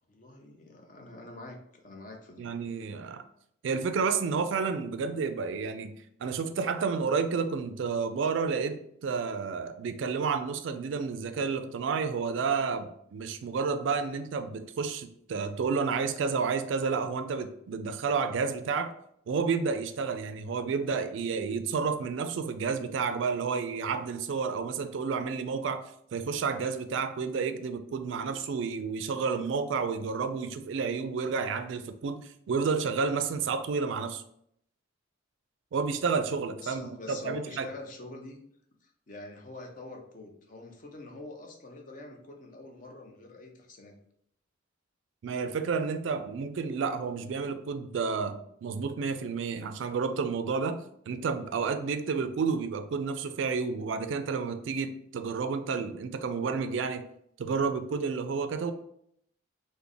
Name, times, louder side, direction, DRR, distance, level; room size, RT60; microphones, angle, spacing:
voice 1, 0.1-2.5 36.6-38.4 38.8-44.0, left 2 dB, 40° left, 2 dB, 0.6 m, -45 dB
voice 2, 2.4-3.2 3.6-18.9 19.3-25.8 26.1-34.2 35.7-37.7 45.2-57.0 57.4-58.7, right 5 dB, 65° right, 9 dB, 0.3 m, -30 dB
3.4 x 2.1 x 3.7 m, 0.70 s
head